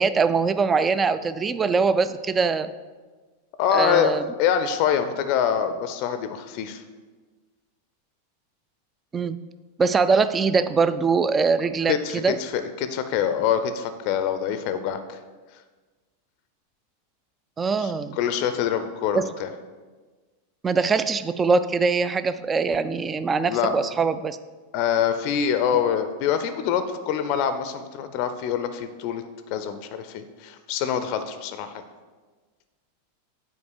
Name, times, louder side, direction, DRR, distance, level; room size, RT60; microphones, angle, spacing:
voice 1, 0.0-2.7 3.7-4.2 9.1-9.4 9.8-12.4 17.6-18.2 19.1-19.3 20.6-24.4, right 4 dB, 20° right, 13 dB, 0.3 m, -22 dB
voice 2, 3.6-4.1 4.4-6.8 11.9-15.2 17.8-19.5 23.5-23.7 24.7-29.2 29.5-31.8, left 8 dB, 45° left, 10 dB, 0.5 m, -25 dB
8.2 x 4.6 x 4.7 m, 1.4 s
figure-of-eight pair, 90°, 0 cm